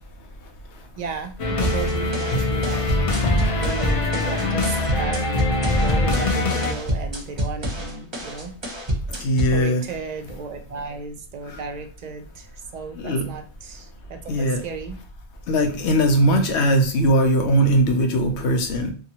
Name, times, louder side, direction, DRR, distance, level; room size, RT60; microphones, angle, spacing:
voice 1, 1.0-2.9 3.6-8.5 9.5-15.0, right 5 dB, 55° right, 5 dB, 0.5 m, -34 dB
sound 1, 1.4-6.7, left 2 dB, 45° left, 0.4 m, -23 dB
sound 2, 1.6-9.6, equal, 30° right, 0.7 m, -29 dB
voice 2, 9.2-9.8 13.0-13.2 14.3-14.6 15.5-18.9, right 1 dB, 90° left, 5 dB, 0.9 m, -19 dB
2.8 x 2.3 x 2.8 m, 0.37 s
omnidirectional pair, 1.1 m